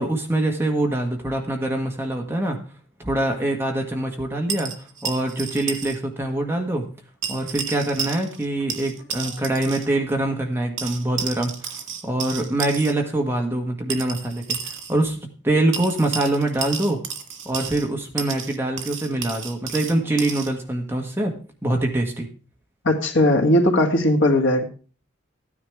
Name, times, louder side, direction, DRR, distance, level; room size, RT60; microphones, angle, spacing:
voice 1, 0.0-2.6 3.0-4.7 5.0-6.8 7.3-11.7 12.0-15.2 15.4-17.0 17.4-21.3 21.6-22.3, right 1 dB, 10° right, 1 dB, 1.5 m, -24 dB
sound 1, 4.5-6.0 6.2-6.3 7.2-8.4 8.7-9.9 10.8-12.9 13.9-14.9 15.7-17.9 18.2-20.5, right 6 dB, 90° right, 1.8 m, -32 dB
voice 2, 22.8-24.6, left 1 dB, 75° left, 1 dB, 1.9 m, -18 dB
14.0 x 9.8 x 3.5 m, 0.37 s
head